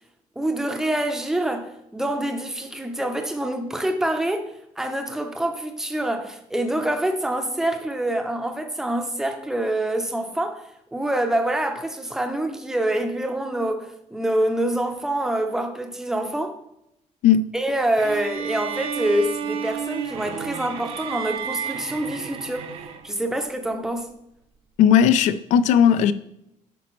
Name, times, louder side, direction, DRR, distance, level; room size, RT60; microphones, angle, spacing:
voice 1, 0.4-16.6 17.5-22.7 23.0-24.2, right 1 dB, 5° right, 0.6 m, -26 dB
sound 1, 18.0-23.2, right 7 dB, 45° right, 0.6 m, -32 dB
voice 2, 24.8-26.1, left 8 dB, 65° left, 0.4 m, -16 dB
10.5 x 5.1 x 3.1 m
cardioid pair, 180°, 13 cm